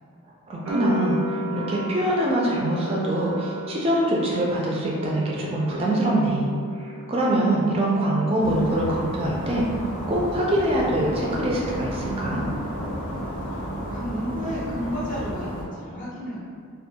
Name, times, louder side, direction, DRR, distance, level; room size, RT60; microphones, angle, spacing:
voice 1, 0.5-6.5 7.1-9.6 10.1-12.4, right 1 dB, 25° right, -4 dB, 0.3 m, -24 dB
sound 1, 0.7-7.5 7.7-8.6, equal, 85° right, 0.5 m, -35 dB
sound 2, 8.4-15.6, equal, 80° left, 0.6 m, -32 dB
voice 2, 13.9-16.5, equal, 35° left, -7 dB, 0.4 m, -31 dB
2.3 x 2.2 x 2.7 m, 2.2 s
head